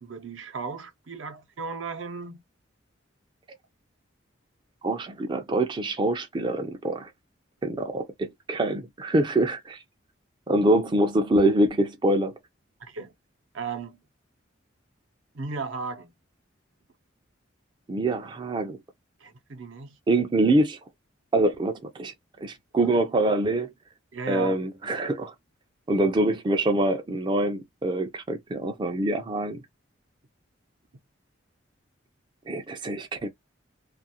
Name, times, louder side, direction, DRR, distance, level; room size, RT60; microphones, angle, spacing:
voice 1, 0.0-2.4 12.8-13.1 13.5-14.0 15.3-16.1 19.2-20.0 22.8-22.9 24.1-24.6, right 4 dB, 75° right, 0.7 m, -35 dB
voice 2, 4.8-7.1 7.6-9.8 10.5-12.3 17.9-18.8 20.1-20.8 21.3-22.1 22.4-23.7 24.3-25.3 25.9-29.6 32.5-33.3, right 1 dB, 25° right, 0.3 m, -25 dB
2.4 x 2.3 x 2.7 m
head